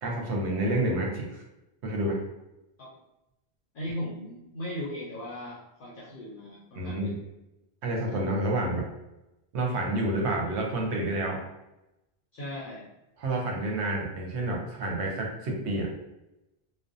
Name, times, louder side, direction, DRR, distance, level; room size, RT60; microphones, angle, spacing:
voice 1, 0.0-1.4 1.8-2.2 6.7-7.2 7.8-8.9 9.5-11.4 13.2-15.9, right 1 dB, 85° right, 0 dB, 0.9 m, -29 dB
voice 2, 3.7-7.1 12.3-12.9, left 1 dB, 60° left, -6 dB, 0.6 m, -37 dB
2.5 x 2.0 x 2.5 m, 0.93 s
omnidirectional pair, 1.1 m